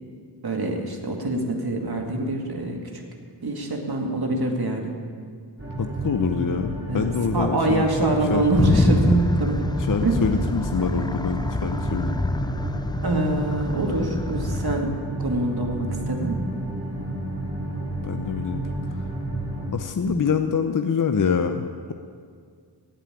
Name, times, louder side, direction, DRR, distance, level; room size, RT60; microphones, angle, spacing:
voice 1, 0.4-3.0 3.4-4.9 6.9-7.1 7.3-9.7 10.0-10.2 13.0-14.9 15.2-16.4 20.1-20.3, right 2 dB, 55° right, 2 dB, 2.2 m, -25 dB
sound 1, 5.6-19.7, right 2 dB, 30° right, 3.9 m, -31 dB
voice 2, 5.8-7.9 8.3-8.4 9.8-12.2 18.0-18.6 19.7-21.9, left 6 dB, 45° left, 7 dB, 0.7 m, -25 dB
sound 2, 8.5-14.8, left 2 dB, 10° left, 0.3 m, -26 dB
16.5 x 5.7 x 9.9 m, 2.1 s
cardioid pair, 55°, 46 cm